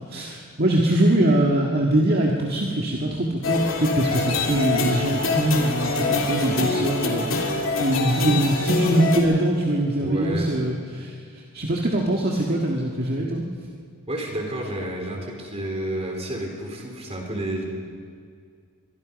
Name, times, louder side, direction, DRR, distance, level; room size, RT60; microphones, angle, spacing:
voice 1, 0.0-7.3 7.8-11.1 11.5-13.4, right 1 dB, 45° right, -2 dB, 1.9 m, -22 dB
sound 1, 3.4-9.2, left 3 dB, 65° left, 3.0 m, -24 dB
voice 2, 10.0-10.5 14.1-17.6, right 1 dB, 30° right, 1 dB, 3.8 m, -30 dB
24.0 x 23.5 x 5.3 m, 2.1 s
head